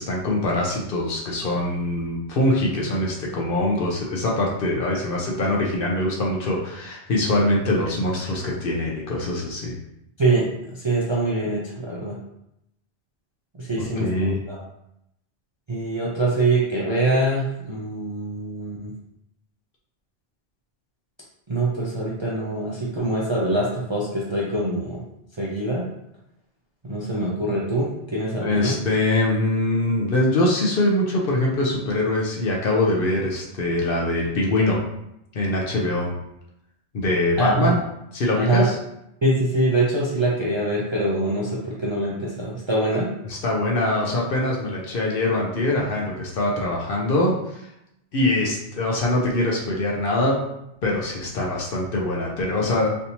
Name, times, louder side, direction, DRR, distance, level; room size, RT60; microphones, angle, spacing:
voice 1, 0.0-9.7 13.8-14.4 28.4-34.8 35.3-36.1 36.9-37.8 38.1-38.8 43.2-47.7 48.1-50.4 50.8-52.9, left 1 dB, 55° left, -2 dB, 0.8 m, -23 dB
voice 2, 10.2-12.2 13.6-14.6 15.7-18.9 21.5-25.0 25.4-25.8 26.8-28.8 37.4-37.7 38.4-38.7 39.2-43.1, right 2 dB, 40° right, -6 dB, 0.4 m, -24 dB
3.3 x 2.7 x 2.8 m, 0.82 s
omnidirectional pair, 1.2 m